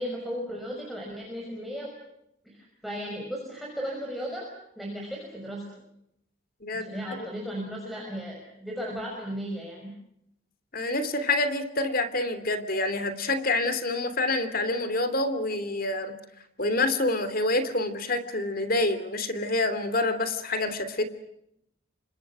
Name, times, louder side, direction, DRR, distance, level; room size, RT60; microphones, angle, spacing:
voice 1, 0.0-1.9 2.4-4.5 4.8-5.6 6.7-9.9, equal, ahead, -2 dB, 5.8 m, -35 dB
voice 2, 6.6-7.3 10.7-16.2 16.6-21.0, left 2 dB, 45° left, 12 dB, 2.9 m, -27 dB
29.5 x 25.5 x 6.3 m, 0.78 s
head